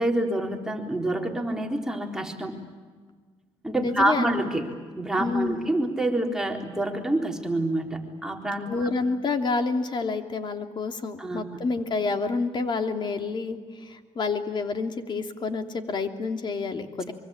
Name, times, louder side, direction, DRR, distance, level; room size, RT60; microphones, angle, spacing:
voice 1, 0.0-2.6 3.6-8.9 11.2-11.6, right 1 dB, 5° right, 1 dB, 4.0 m, -27 dB
voice 2, 3.8-4.4 5.2-5.6 8.7-17.1, left 4 dB, 45° left, 6 dB, 2.9 m, -28 dB
24.5 x 24.5 x 8.8 m, 1.5 s
cardioid pair, 95°, 11 cm